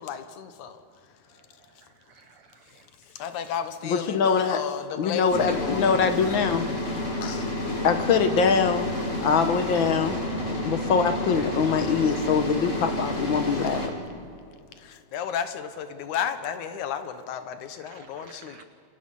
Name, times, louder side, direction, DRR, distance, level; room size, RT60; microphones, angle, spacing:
voice 1, 0.0-1.9 2.7-6.3 7.2-7.8 14.8-18.6, left 8 dB, 85° left, 9 dB, 2.6 m, -34 dB
voice 2, 1.6-2.9 17.8-18.6, right 5 dB, 90° right, 10 dB, 1.2 m, -53 dB
voice 3, 3.8-4.6 5.0-6.7 7.8-8.9 9.2-10.3 10.6-13.9, left 6 dB, 60° left, 8 dB, 1.4 m, -23 dB
sound 1, 5.3-13.9, left 1 dB, 25° left, 2.8 m, -30 dB
28.0 x 25.5 x 5.6 m, 2.4 s
omnidirectional pair, 3.3 m